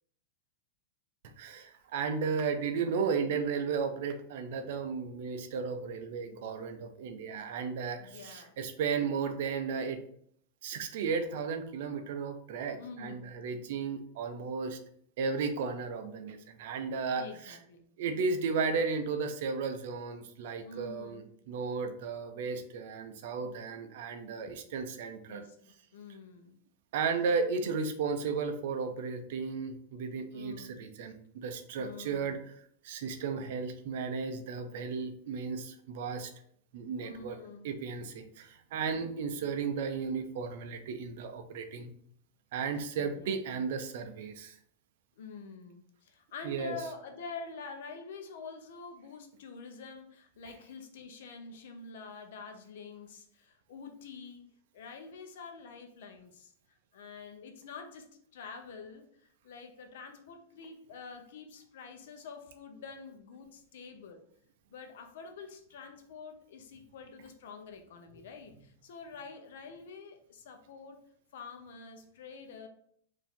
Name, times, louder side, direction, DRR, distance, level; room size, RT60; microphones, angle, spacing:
voice 1, 1.4-10.0 10.6-14.8 15.2-17.6 18.0-25.5 26.9-36.3 36.7-37.4 37.6-41.9 42.5-44.5 46.4-46.8, right 5 dB, 60° right, 7 dB, 0.6 m, -34 dB
voice 2, 7.9-8.6 12.8-13.2 17.1-17.9 20.6-21.2 24.4-24.6 25.3-26.6 30.3-30.7 31.8-32.4 37.0-37.6 42.9-43.4 45.2-54.5 54.7-59.1 59.4-64.2 64.7-71.0 71.3-72.7, left 4 dB, 70° left, 5 dB, 0.8 m, -47 dB
4.7 x 2.8 x 3.7 m, 0.64 s
supercardioid pair, 165°, 0 cm